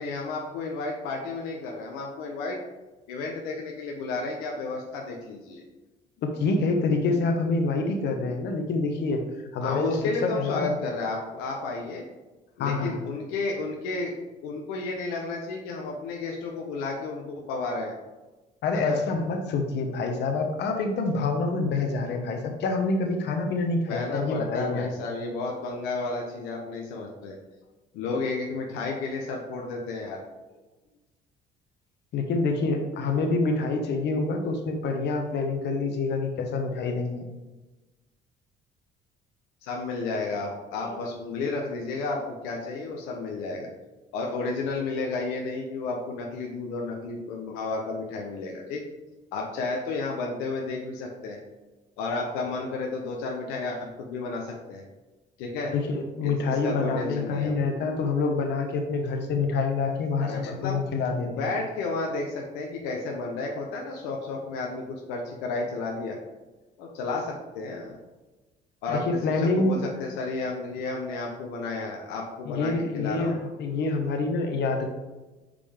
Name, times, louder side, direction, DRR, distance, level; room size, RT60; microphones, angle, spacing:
voice 1, 0.0-2.6 3.1-5.6 9.6-12.0 12.6-14.1 14.4-17.9 18.7-19.0 23.9-27.4 27.9-30.2 39.6-42.2 42.4-43.7 44.1-48.8 49.3-51.4 52.0-54.8 55.4-55.7 56.2-57.5 60.2-60.8 61.3-66.2 66.8-68.0 68.8-69.2 69.6-73.4, left 3 dB, 90° left, 0 dB, 0.8 m, -32 dB
voice 2, 6.2-9.2 9.5-10.7 12.6-13.0 18.6-24.9 32.1-37.3 40.8-40.9 55.7-61.5 68.9-69.9 72.4-74.9, left 3 dB, 65° left, 4 dB, 1.1 m, -27 dB
5.2 x 5.1 x 3.6 m, 1.1 s
supercardioid pair, 75°, 19 cm